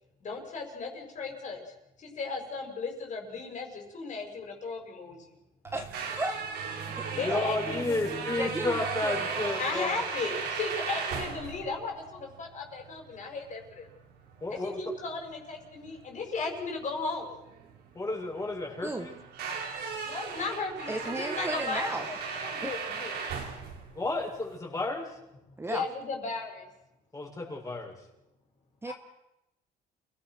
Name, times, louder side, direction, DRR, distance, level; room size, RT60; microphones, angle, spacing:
voice 1, 0.2-1.6 2.0-5.4 7.1-8.2 9.6-13.9 14.5-17.4 20.0-23.2 25.6-26.7 28.8-28.9, left 4 dB, 45° left, 2 dB, 6.8 m, -36 dB
voice 2, 5.6-6.4 7.0-7.4 8.4-9.3 18.8-19.1 20.9-22.1 22.6-22.7 25.6-25.8 28.8-28.9, right 2 dB, 15° right, 6 dB, 1.5 m, -35 dB
sound 1, 5.7-24.6, right 5 dB, 75° right, 5.1 m, -37 dB
voice 3, 7.1-10.1 14.4-14.8 17.9-19.2 23.9-25.1 27.1-27.9, left 2 dB, 20° left, -1 dB, 7.1 m, -32 dB
29.5 x 18.0 x 6.2 m, 0.89 s
cardioid pair, 110°, 17 cm